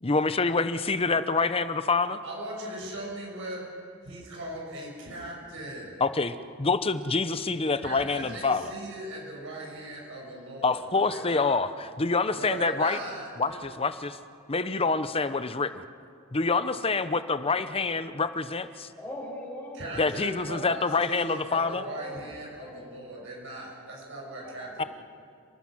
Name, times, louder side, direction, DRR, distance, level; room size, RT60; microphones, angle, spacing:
voice 1, 0.0-2.2 6.0-8.7 10.6-13.0 13.4-14.2 14.5-15.8 16.3-18.9 20.0-21.8 24.8-24.9, left 4 dB, 25° left, 12 dB, 0.8 m, -26 dB
voice 2, 2.2-3.7 4.0-6.0 7.8-11.5 12.3-13.6 19.7-24.9, right 1 dB, 65° right, -2 dB, 6.3 m, -39 dB
voice 3, 19.0-22.8 24.4-24.9, left 1 dB, 10° left, -6 dB, 6.5 m, -43 dB
30.0 x 19.5 x 6.3 m, 2.3 s
head